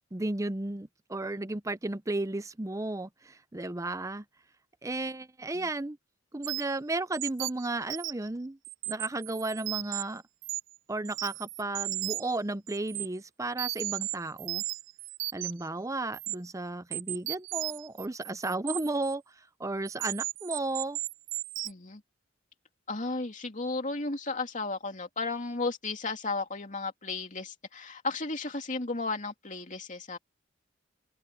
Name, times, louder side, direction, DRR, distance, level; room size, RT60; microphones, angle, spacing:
voice 1, 0.1-4.2 4.8-6.0 6.3-8.6 8.9-10.2 10.9-14.6 15.3-19.2 19.6-21.0, right 2 dB, 15° right, 0.7 m, -34 dB
sound 1, 6.4-6.8 7.1-8.3 8.7-10.0 10.4-10.8 11.1-12.4 12.7-13.1 13.6-15.7 16.1-16.4 16.9-19.1 19.9-21.7, right 19 dB, 85° right, 0.5 m, -35 dB
voice 2, 21.6-22.0 22.9-30.2, left 3 dB, 40° left, 2.8 m, -34 dB
open air
head